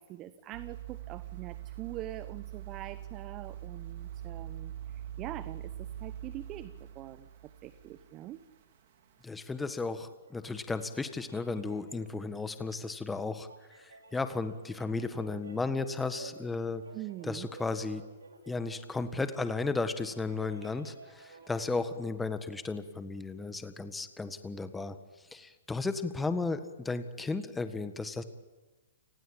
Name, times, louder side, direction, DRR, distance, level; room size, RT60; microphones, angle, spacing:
voice 1, 0.0-7.3 7.6-8.4 16.9-17.5, right 14 dB, 30° right, 14 dB, 1.0 m, -44 dB
sound 1, 0.5-8.8 9.2-9.3, right 11 dB, 55° right, 3.0 m, -43 dB
voice 2, 9.2-13.5 13.7-16.8 17.2-18.0 18.5-25.0 25.3-28.2, left 3 dB, 10° left, 10 dB, 1.6 m, -34 dB
sound 2, 9.9-22.0, right 3 dB, 90° right, 5.2 m, -54 dB
29.5 x 19.0 x 8.8 m, 1.2 s
hypercardioid pair, 125°, 0 cm